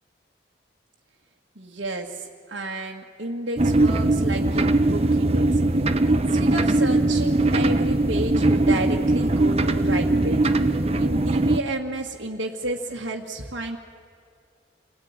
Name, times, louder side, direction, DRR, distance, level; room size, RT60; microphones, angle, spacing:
voice 1, 1.6-5.6 6.0-10.4 10.7-13.8, right 2 dB, 85° right, -4 dB, 1.8 m, -31 dB
sound 1, 3.6-11.6, right 2 dB, 35° right, 0.9 m, -20 dB
27.5 x 17.5 x 9.6 m, 2.3 s
head